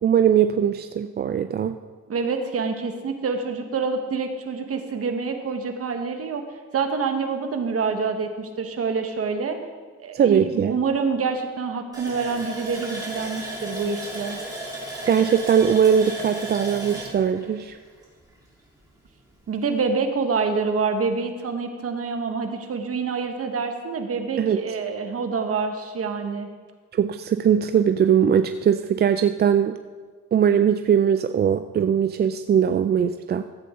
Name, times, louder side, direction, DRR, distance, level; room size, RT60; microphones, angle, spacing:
voice 1, 0.0-1.8 10.1-10.7 15.1-17.8 24.4-24.6 26.9-29.8 30.3-33.4, right 8 dB, 35° right, 9 dB, 0.4 m, -20 dB
voice 2, 2.1-6.4 6.7-9.6 10.0-14.4 19.5-26.5, right 5 dB, 50° right, 6 dB, 1.3 m, -26 dB
Water tap faucet, 11.9-18.4 18.8-18.9 19.3-19.5, right 1 dB, 10° right, 3.5 m, -35 dB
14.0 x 8.4 x 3.8 m, 1.5 s
cardioid pair, 90°, 30 cm